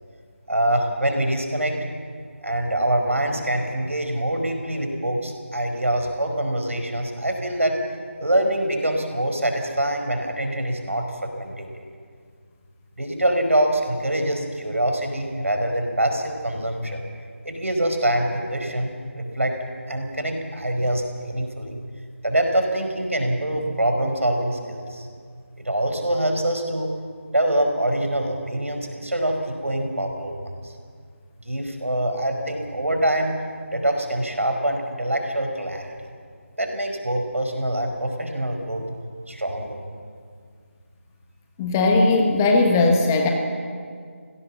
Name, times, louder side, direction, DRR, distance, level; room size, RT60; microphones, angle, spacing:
voice 1, 0.5-1.8 2.4-7.8 8.2-11.8 13.0-17.0 17.4-19.6 19.9-21.7 22.2-25.1 25.6-26.9 27.3-30.7 31.4-33.4 33.7-35.9 36.6-38.8 39.3-39.8, right 1 dB, 70° right, 4 dB, 4.9 m, -24 dB
voice 2, 41.6-43.3, left 3 dB, 10° left, 2 dB, 1.4 m, -18 dB
25.5 x 17.5 x 7.4 m, 2.1 s
figure-of-eight pair, 160°, 7 cm